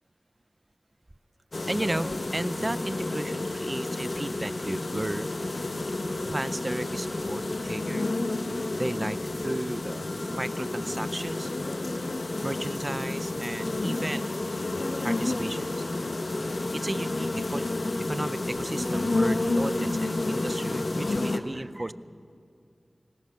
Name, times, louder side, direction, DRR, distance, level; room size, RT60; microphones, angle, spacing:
sound 1, 1.5-21.4, left 2 dB, 65° left, 1.2 m, -30 dB
voice 1, 1.7-5.3 6.3-8.1 8.7-11.5 12.4-14.3 15.0-15.7 16.7-17.7 18.1-21.9, right 1 dB, 30° right, 14 dB, 0.5 m, -34 dB
21.5 x 19.5 x 6.5 m, 2.4 s
wide cardioid pair, 60°, 0 cm